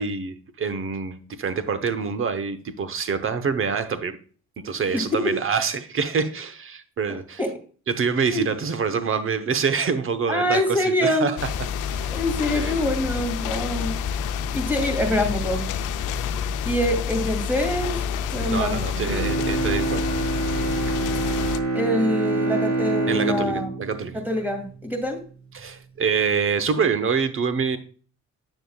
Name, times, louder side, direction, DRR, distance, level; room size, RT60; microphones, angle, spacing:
voice 1, 0.0-4.2 4.6-7.4 7.9-11.5 11.9-12.2 12.5-12.8 18.5-20.1 23.1-24.2 25.5-27.8, right 5 dB, 45° right, 0.9 m, -26 dB
voice 2, 4.9-5.4 7.1-7.5 8.3-8.5 10.3-11.3 12.1-14.0 14.5-15.7 16.7-18.0 18.3-18.8 21.7-23.7 24.3-25.2, left 1 dB, 5° right, 2.5 m, -25 dB
sound 1, 11.4-21.6, left 7 dB, 85° left, 0.6 m, -28 dB
Bowed string instrument, 18.9-25.1 25.6-25.7, right 3 dB, 65° right, 2.1 m, -26 dB
7.9 x 6.7 x 2.3 m
cardioid pair, 90°, 30 cm